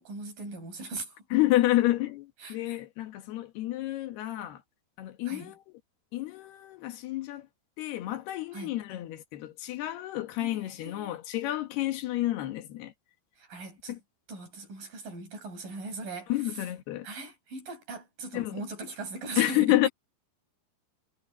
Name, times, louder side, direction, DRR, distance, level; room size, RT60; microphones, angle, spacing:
voice 1, 0.0-1.3 2.4-2.6 5.3-5.5 8.5-8.8 10.4-11.2 13.4-14.0 14.3-16.7 17.0-19.9, right 3 dB, 60° right, 8.5 m, -40 dB
voice 2, 1.3-4.6 5.0-5.6 6.1-7.5 7.8-12.9 13.9-14.0 16.3-17.1 18.3-18.6 19.4-19.9, left 16 dB, 85° left, 3.6 m, -29 dB
omnidirectional pair, 4.5 m